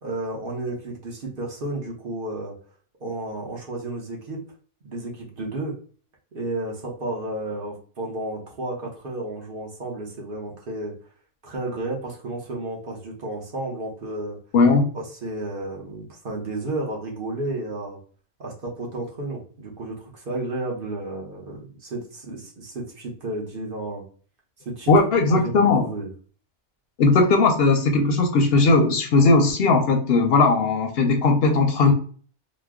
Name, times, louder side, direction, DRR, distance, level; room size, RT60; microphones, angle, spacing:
voice 1, 0.0-2.5 3.0-4.4 4.8-5.8 6.3-10.9 11.4-14.4 14.9-18.0 18.4-24.0 24.6-24.9 25.3-26.1, right 2 dB, 50° right, -1 dB, 1.0 m, -32 dB
voice 2, 14.5-14.9 24.9-25.9 27.0-31.9, left 3 dB, 65° left, 4 dB, 0.7 m, -18 dB
3.0 x 2.0 x 3.5 m, 0.42 s
omnidirectional pair, 1.2 m